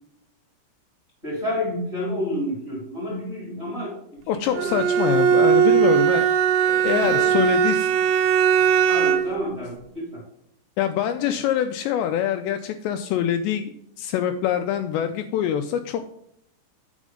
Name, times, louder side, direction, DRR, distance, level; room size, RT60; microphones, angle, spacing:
voice 1, 1.2-4.7 6.8-7.4 8.9-10.2, left 1 dB, 20° right, -3 dB, 2.0 m, -30 dB
voice 2, 4.3-6.3 6.6-7.9 10.8-16.0, left 10 dB, 85° left, 7 dB, 2.6 m, -24 dB
Bowed string instrument, 4.5-9.4, right 8 dB, 80° right, 2.6 m, -19 dB
9.0 x 4.2 x 4.9 m, 0.73 s
omnidirectional pair, 5.3 m